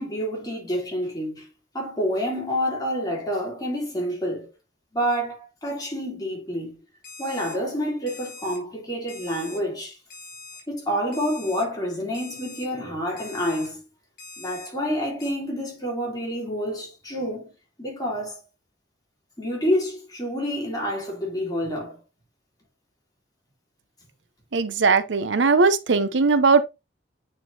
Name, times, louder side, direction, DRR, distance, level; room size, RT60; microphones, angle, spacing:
voice 1, 0.0-1.5 1.7-4.5 4.9-6.8 7.2-10.0 10.7-13.8 14.4-17.5 17.8-18.4 19.4-22.0, equal, 20° left, 3.2 m, -28 dB
Alarm, 7.0-7.6 8.1-8.6 9.1-9.6 10.1-10.6 11.1-11.6 12.1-12.6 13.2-13.7 14.2-14.7 15.2-15.3, left 4 dB, 50° left, 3.1 m, -42 dB
voice 2, 24.5-26.6, right 4 dB, 80° right, 0.7 m, -19 dB
8.8 x 4.8 x 2.8 m
head